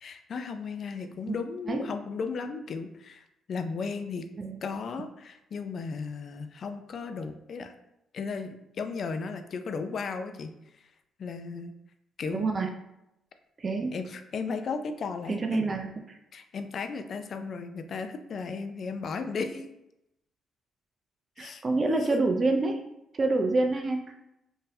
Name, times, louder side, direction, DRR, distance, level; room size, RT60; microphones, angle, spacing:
voice 1, 0.0-4.3 4.6-7.7 8.1-10.5 11.2-11.7 12.2-12.7 13.9-15.7 16.3-19.7 21.4-22.2, left 4 dB, 55° left, 8 dB, 0.4 m, -35 dB
voice 2, 12.3-12.7 13.6-13.9 15.3-15.9 21.4-22.8 23.1-24.1, right 3 dB, 35° right, 4 dB, 0.4 m, -27 dB
3.7 x 2.7 x 2.7 m, 0.86 s
cardioid pair, 90°, 0 cm